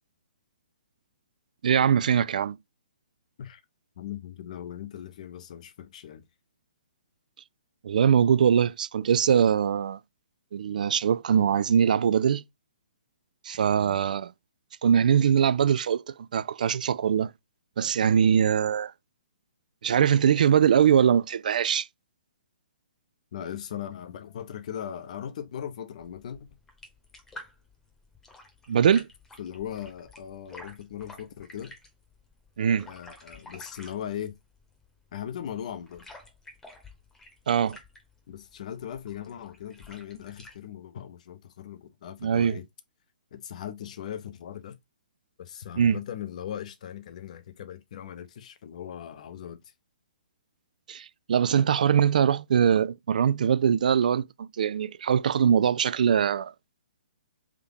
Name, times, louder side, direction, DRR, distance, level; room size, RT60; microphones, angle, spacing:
voice 1, 1.6-2.6 7.8-10.0 10.5-12.4 13.4-14.3 14.8-17.3 17.8-18.9 19.8-21.9 28.7-29.1 32.6-32.9 37.5-37.8 42.2-42.6 45.8-46.0 50.9-56.5, right 8 dB, 60° right, 0.3 m, -22 dB
voice 2, 4.0-6.2 13.7-14.0 23.3-26.5 29.4-31.8 32.9-34.4 35.1-36.1 38.3-42.7 43.3-44.8 45.4-49.6, left 10 dB, 50° left, 0.7 m, -39 dB
sound 1, 26.0-40.6, left 1 dB, 10° left, 1.0 m, -51 dB
3.6 x 2.8 x 3.6 m
hypercardioid pair, 135°, 5 cm